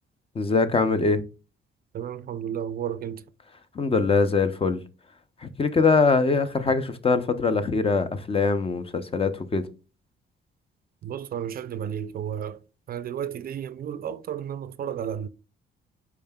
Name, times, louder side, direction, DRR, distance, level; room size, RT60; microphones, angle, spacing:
voice 1, 0.3-1.2 3.7-4.8 5.4-9.6, left 4 dB, 30° left, 0.5 m, -22 dB
voice 2, 1.9-3.2 11.0-12.6 12.9-15.3, right 9 dB, 50° right, 0.4 m, -32 dB
5.2 x 4.6 x 2.2 m
cardioid pair, 90°, 20 cm